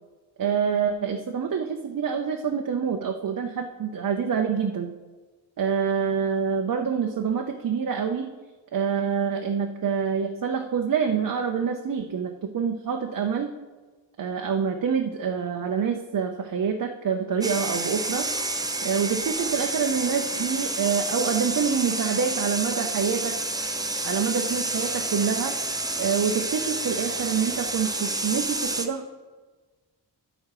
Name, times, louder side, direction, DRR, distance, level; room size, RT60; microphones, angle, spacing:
voice 1, 0.4-4.9 5.6-8.3 8.7-13.5 14.2-18.3 18.8-23.4 24.0-25.5 26.0-29.0, right 6 dB, 50° right, 3 dB, 0.7 m, -26 dB
sound 1, 17.4-28.9, right 2 dB, 10° right, 0.6 m, -29 dB
10.0 x 8.4 x 4.8 m, 1.3 s
wide cardioid pair, 170°, 45 cm